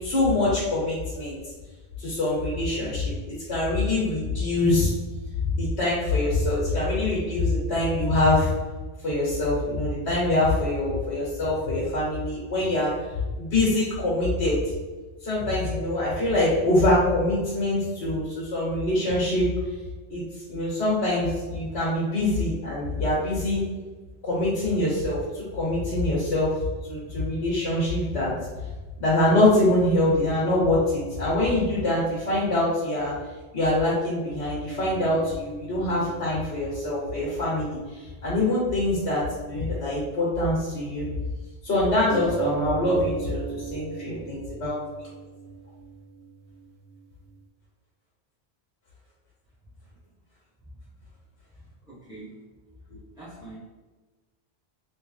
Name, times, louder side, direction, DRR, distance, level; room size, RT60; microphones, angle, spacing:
voice 1, 0.0-1.4 2.0-4.9 5.5-8.5 9.0-12.9 13.4-14.7 15.2-19.5 20.1-20.2 20.5-23.6 24.2-26.5 26.9-28.3 29.0-33.1 33.5-41.1 41.6-44.8 52.9-53.0, left 1 dB, 70° left, -7 dB, 1.3 m, -24 dB
sound 1, 34.6-38.5 38.8-38.9 42.1-47.3, right 5 dB, 85° right, 1.4 m, -39 dB
voice 2, 51.9-52.4 53.2-53.6, right 2 dB, 5° right, -12 dB, 0.8 m, -43 dB
3.2 x 3.1 x 3.2 m, 1.3 s
omnidirectional pair, 1.1 m